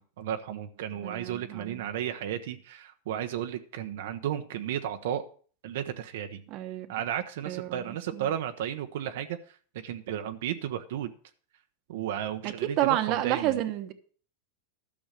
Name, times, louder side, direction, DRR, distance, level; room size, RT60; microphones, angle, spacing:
voice 1, 0.0-5.2 5.6-6.4 6.9-9.6 9.8-11.1 11.9-13.6, right 10 dB, 70° right, 0.9 m, -34 dB
voice 2, 1.0-1.8 6.5-6.9 7.5-8.3 12.4-13.9, right 13 dB, 40° right, 1.1 m, -30 dB
12.0 x 6.3 x 6.5 m
supercardioid pair, 150°, 0 cm